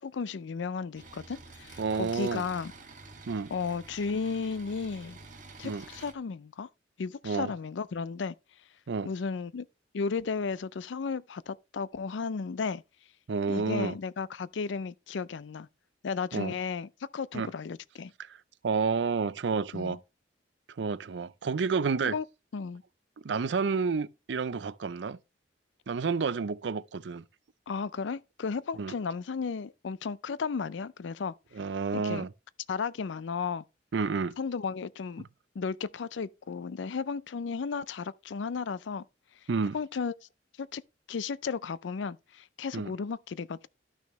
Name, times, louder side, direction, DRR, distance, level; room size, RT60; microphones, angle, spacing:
voice 1, 0.0-2.7 3.5-5.2 5.6-6.7 7.0-8.3 9.0-9.7 9.9-12.8 13.5-15.7 16.0-18.1 19.7-20.0 22.1-22.2 22.5-22.8 27.7-31.3 31.9-32.3 32.7-33.6 34.4-35.2 35.6-39.0 39.7-40.1 40.6-40.8 41.1-43.7, left 5 dB, 80° left, 0.4 m, -34 dB
sound 1, 0.9-6.1, right 3 dB, 45° right, 1.9 m, -49 dB
voice 2, 1.8-2.4 3.3-3.5 5.6-5.8 7.2-7.5 8.9-9.1 13.3-14.0 16.3-16.5 17.3-17.5 18.2-18.4 18.6-20.0 20.8-22.1 23.2-25.2 25.9-27.2 28.8-28.9 31.5-32.3 33.9-34.4 35.2-35.3 39.5-39.8 42.7-42.9, right 5 dB, 70° right, 0.5 m, -30 dB
12.0 x 6.2 x 3.1 m
head